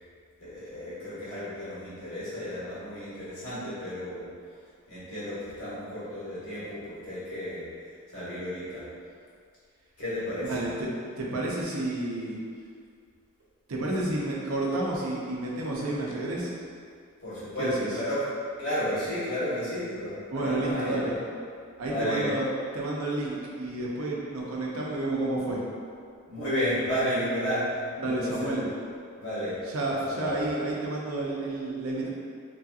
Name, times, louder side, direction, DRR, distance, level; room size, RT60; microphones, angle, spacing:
voice 1, 0.4-4.3 4.9-7.6 8.1-8.9 10.0-10.5 17.2-18.3 18.6-21.1 21.8-22.3 26.3-28.6 29.2-30.4, equal, 70° left, -11 dB, 1.4 m, -32 dB
voice 2, 10.4-10.9 11.2-12.4 13.7-16.5 17.6-17.9 20.3-21.2 21.8-22.5 22.7-25.6 28.0-28.6 29.7-32.1, right 2 dB, 65° right, -3 dB, 0.5 m, -30 dB
3.0 x 2.7 x 2.3 m, 2.2 s
head